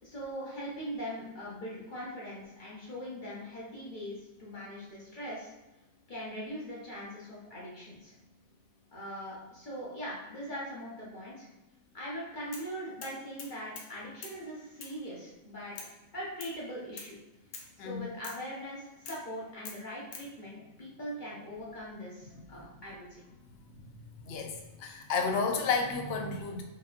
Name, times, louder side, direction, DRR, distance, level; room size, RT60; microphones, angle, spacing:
voice 1, 0.0-5.5 6.1-8.1 8.9-11.5 11.9-15.8 16.1-17.2 17.8-23.2, equal, 40° left, -6 dB, 1.0 m, -41 dB
sound 1, 12.5-12.7 13.0-13.9 14.2-14.4 14.8-15.0 15.8-16.0 16.4-16.6 17.0-17.1 17.5-17.7 18.2-18.5 19.0-19.3 19.6-20.3, left 4 dB, 90° left, 1.1 m, -45 dB
voice 2, 24.2-26.6, left 5 dB, 60° left, 3 dB, 0.7 m, -31 dB
4.9 x 2.8 x 2.4 m, 1.0 s
omnidirectional pair, 1.4 m